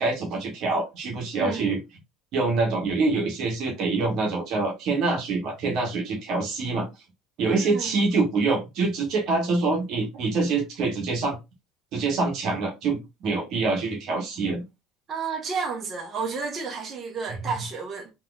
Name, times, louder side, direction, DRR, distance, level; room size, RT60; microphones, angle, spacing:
voice 1, 0.0-1.8 2.3-6.9 7.4-11.4 11.9-14.6 17.4-17.5, right 3 dB, 60° right, 1.3 m, -25 dB
voice 2, 1.3-1.7 7.4-8.0 15.1-18.1, right 5 dB, 40° right, 1.3 m, -32 dB
3.6 x 2.8 x 2.4 m
hypercardioid pair, 80°, 0 cm